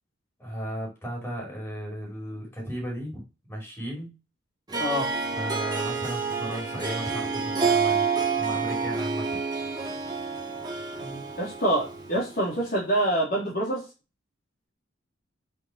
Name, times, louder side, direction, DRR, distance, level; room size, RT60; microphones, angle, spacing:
voice 1, 0.4-4.1 5.4-8.1 8.3-9.4, equal, 15° left, -3 dB, 5.3 m, -35 dB
Harp, 4.7-12.4, right 5 dB, 20° right, 1.8 m, -28 dB
voice 2, 11.0-13.8, right 1 dB, 45° left, -3 dB, 3.7 m, -26 dB
8.2 x 5.8 x 6.7 m, 0.30 s
head